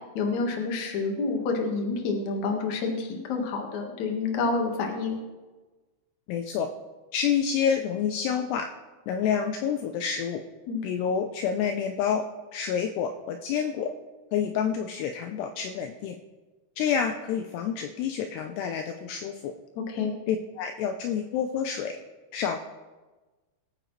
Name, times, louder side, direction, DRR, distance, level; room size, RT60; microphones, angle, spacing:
voice 1, 0.1-5.2 10.7-10.9 19.8-20.1, left 4 dB, 60° left, 2 dB, 2.1 m, -28 dB
voice 2, 6.3-6.7 7.1-8.7 9.1-10.4 10.8-12.2 12.5-13.9 14.3-16.2 16.8-19.5 20.3-21.9 22.3-22.7, left 7 dB, 85° left, 6 dB, 2.3 m, -28 dB
23.0 x 9.0 x 3.2 m, 1.2 s
omnidirectional pair, 5.6 m